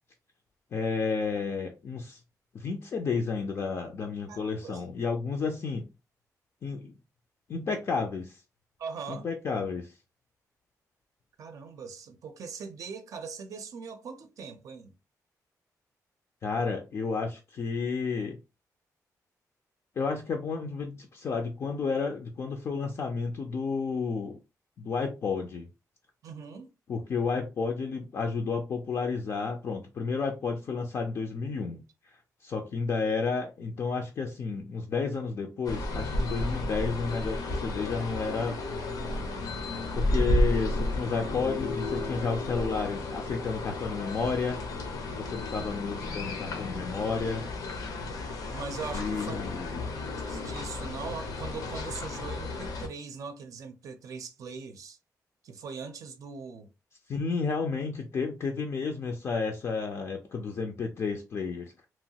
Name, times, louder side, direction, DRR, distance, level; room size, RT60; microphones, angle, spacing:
voice 1, 0.7-2.2 2.5-5.9 6.6-6.9 7.5-8.4 9.1-9.9 16.4-18.4 20.0-24.4 24.8-25.7 26.9-31.8 32.4-38.6 39.9-44.6 45.1-47.4 48.9-49.9 57.1-61.7, left 5 dB, 45° left, 0.4 m, -31 dB
voice 2, 4.3-4.8 8.8-9.3 11.4-14.9 26.2-26.7 48.5-49.4 50.2-55.0 55.4-56.7, right 5 dB, 60° right, 0.5 m, -41 dB
sound 1, 35.6-52.9, left 1 dB, 80° left, 0.7 m, -32 dB
2.9 x 2.3 x 2.7 m
wide cardioid pair, 165°, 6 cm